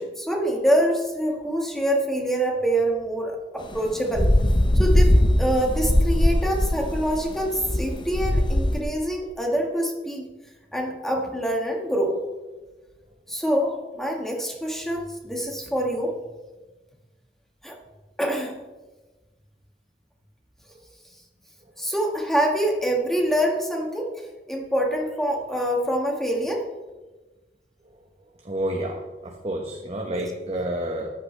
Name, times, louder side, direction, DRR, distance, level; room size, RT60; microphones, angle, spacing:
voice 1, 0.0-4.3 4.7-10.3 10.7-12.2 13.3-16.2 17.6-17.8 18.2-18.5 21.8-26.7 30.1-30.3, right 1 dB, ahead, 0 dB, 1.7 m, -25 dB
sound 1, 3.7-8.8, left 1 dB, 25° left, 0.8 m, -20 dB
voice 2, 28.4-31.1, right 1 dB, 35° right, 1 dB, 1.2 m, -29 dB
13.5 x 11.5 x 3.4 m, 1.2 s
head